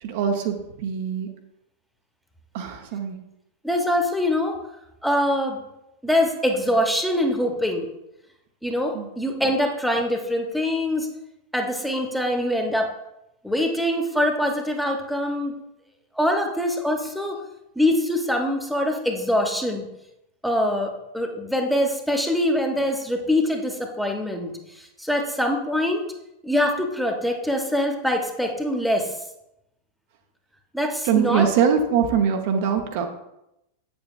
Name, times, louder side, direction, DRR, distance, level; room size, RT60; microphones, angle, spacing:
voice 1, 0.0-1.3 2.5-3.2 8.9-9.1 31.0-33.1, right 7 dB, 50° right, 4 dB, 0.7 m, -23 dB
voice 2, 3.6-4.6 5.0-5.6 6.0-7.9 8.6-11.1 11.5-12.9 13.4-15.5 16.2-17.4 17.8-19.9 20.4-24.5 25.0-26.1 26.4-29.1 30.7-31.5, left 1 dB, ahead, 3 dB, 1.0 m, -23 dB
8.4 x 7.0 x 2.4 m, 0.87 s
figure-of-eight pair, 90°, 0 cm